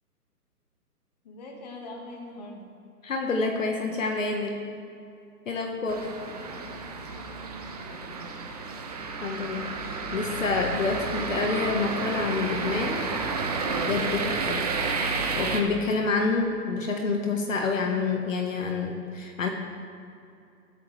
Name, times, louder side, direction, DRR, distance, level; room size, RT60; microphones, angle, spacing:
voice 1, 1.2-2.7 6.0-6.5 7.8-8.3, left 2 dB, 25° left, 1 dB, 1.8 m, -43 dB
voice 2, 3.0-4.6 5.4-6.1 9.2-13.1 13.8-14.6 15.3-19.5, left 4 dB, 55° left, 3 dB, 1.5 m, -28 dB
sound 1, 5.9-15.6, right 4 dB, 25° right, 0.9 m, -31 dB
16.5 x 13.0 x 3.4 m, 2.5 s
hypercardioid pair, 165°, 47 cm